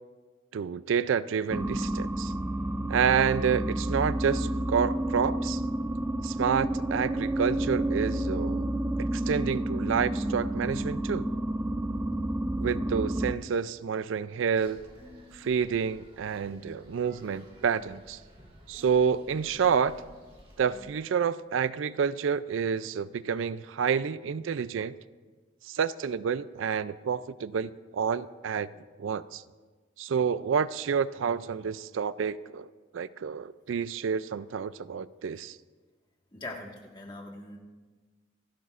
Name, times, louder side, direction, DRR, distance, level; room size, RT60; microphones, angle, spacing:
voice 1, 0.5-2.3 2.9-5.6 6.2-8.7 9.0-11.3 12.6-14.8 15.3-18.2 18.7-19.9 20.6-25.0 25.7-28.7 29.0-29.4 30.0-32.7 32.9-35.6, right 6 dB, 85° right, 0.4 m, -29 dB
sound 1, 1.5-13.4, right 1 dB, 10° right, 0.3 m, -30 dB
sound 2, 14.5-20.9, equal, 25° right, 1.8 m, -51 dB
voice 2, 36.3-37.6, left 2 dB, 20° left, 1.6 m, -41 dB
26.5 x 12.0 x 2.5 m
head